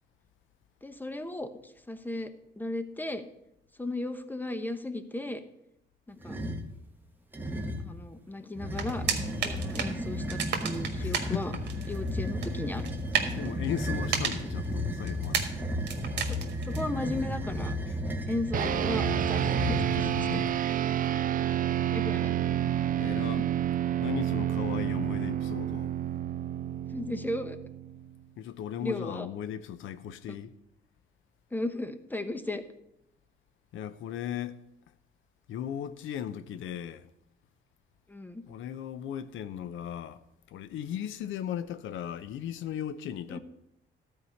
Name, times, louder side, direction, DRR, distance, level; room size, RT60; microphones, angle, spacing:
voice 1, 0.8-1.5 1.9-2.3 2.6-3.2 3.8-5.4 6.1-6.4 7.8-9.0 9.4-11.5 11.9-12.9 16.3-16.4 16.7-17.7 18.3-19.8 20.3-20.4 21.7-22.4 23.0-23.4 26.9-27.6 28.8-29.3 31.5-32.6 38.1-38.4 43.3-43.4, left 2 dB, 10° left, 0.9 m, -35 dB
sound 1, 6.2-6.7 7.3-8.0 8.5-20.6, left 1 dB, 10° right, 1.2 m, -34 dB
sound 2, 8.7-17.2, right 7 dB, 60° right, 1.5 m, -35 dB
voice 2, 11.0-11.7 13.3-15.5 17.9-18.2 19.3-19.4 19.8-20.5 21.0-21.1 23.0-23.5 24.0-25.9 28.4-30.5 33.7-34.6 35.5-37.1 38.4-43.4, left 10 dB, 80° left, 0.7 m, -37 dB
sound 3, 18.5-28.2, right 11 dB, 45° right, 0.4 m, -29 dB
12.5 x 4.8 x 7.0 m
cardioid pair, 90°, 20 cm